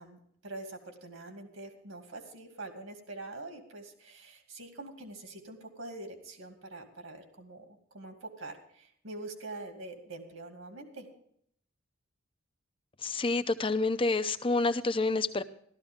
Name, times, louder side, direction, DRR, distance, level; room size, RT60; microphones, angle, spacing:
voice 1, 0.0-11.1, right 2 dB, 70° right, 4 dB, 2.4 m, -45 dB
voice 2, 13.0-15.4, left 3 dB, 25° left, 11 dB, 0.6 m, -28 dB
14.5 x 13.5 x 3.6 m, 0.67 s
head